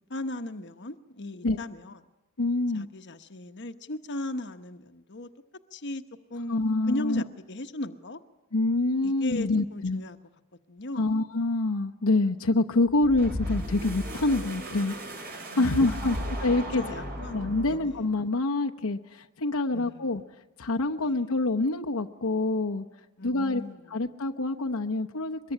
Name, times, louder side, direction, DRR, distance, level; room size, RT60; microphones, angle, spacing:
voice 1, 0.1-1.9 2.7-5.3 5.7-6.0 6.3-8.2 9.0-10.2 10.7-11.1 15.5-16.2 16.8-18.0 19.7-20.2 21.0-21.2 23.2-24.0, left 2 dB, 55° left, 8 dB, 1.1 m, -37 dB
voice 2, 2.4-2.9 6.5-7.2 8.5-10.0 11.0-14.9 15.6-16.8 17.3-20.2 20.6-22.9 23.2-23.6 23.9-25.4, left 2 dB, 80° left, 2 dB, 1.0 m, -26 dB
sound 1, 12.9-18.1, equal, 45° right, 5.4 m, -36 dB
23.5 x 21.5 x 9.8 m, 0.99 s
head